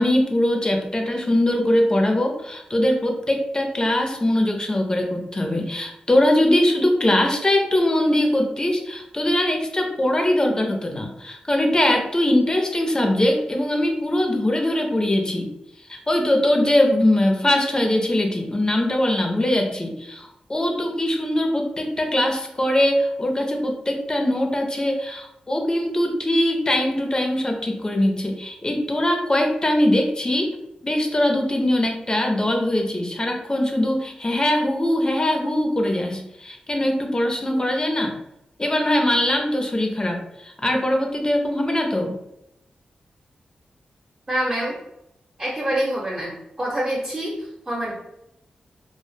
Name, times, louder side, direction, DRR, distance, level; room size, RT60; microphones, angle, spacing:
voice 1, 0.0-15.5 15.9-30.6 30.8-38.1 38.6-42.1, left 1 dB, 30° left, 3 dB, 0.5 m, -21 dB
voice 2, 44.3-44.7 45.4-46.3 46.6-47.9, right 1 dB, 30° right, -4 dB, 0.8 m, -25 dB
2.0 x 2.0 x 3.2 m, 0.83 s
cardioid pair, 45°, 3 cm